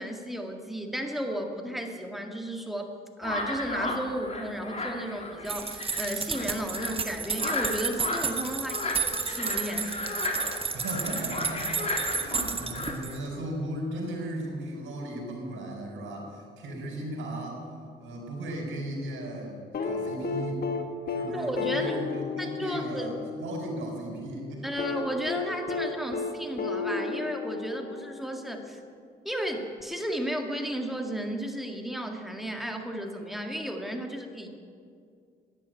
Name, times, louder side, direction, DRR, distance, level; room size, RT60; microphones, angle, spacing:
voice 1, 0.0-10.0 21.3-22.0 22.4-23.2 24.6-28.8 29.2-34.5, equal, ahead, 3 dB, 1.8 m, -34 dB
sound 1, 3.2-12.9, left 2 dB, 35° left, 2.4 m, -34 dB
sound 2, 5.4-13.2, right 5 dB, 30° right, 1.1 m, -32 dB
voice 2, 10.7-17.6 18.0-20.7 21.1-24.9, right 1 dB, 80° right, 0 dB, 4.5 m, -36 dB
sound 3, 19.7-23.8 24.8-28.4 29.8-29.9, left 5 dB, 50° left, 1.4 m, -33 dB
11.0 x 9.9 x 8.9 m, 2.2 s
cardioid pair, 90°, 20 cm